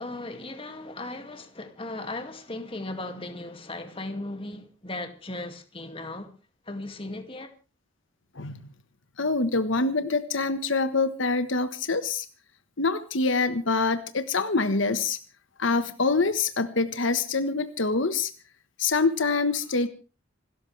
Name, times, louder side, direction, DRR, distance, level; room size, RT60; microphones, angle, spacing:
voice 1, 0.0-6.3 6.7-7.5, left 2 dB, 25° left, 2.3 m, -37 dB
voice 2, 9.2-12.2 12.8-15.2 15.6-18.3 18.8-19.9, left 3 dB, 70° left, 1.3 m, -25 dB
27.5 x 13.5 x 3.4 m
head